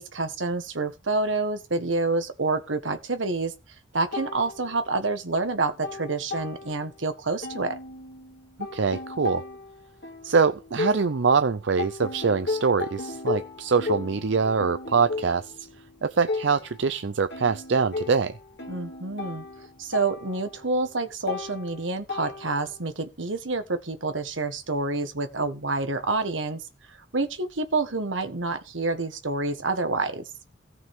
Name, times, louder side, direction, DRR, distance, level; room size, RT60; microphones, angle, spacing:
voice 1, 0.0-3.5 3.9-7.8 18.7-19.4 19.8-26.6 27.1-30.2, right 3 dB, 90° right, 1.6 m, -28 dB
sound 1, 4.1-5.2 5.5-7.1 7.4-11.4 11.8-22.8, left 3 dB, 65° left, 1.9 m, -36 dB
voice 2, 8.7-9.4 10.2-15.5 16.0-18.3, right 5 dB, 70° right, 0.6 m, -24 dB
17.5 x 6.1 x 3.6 m
head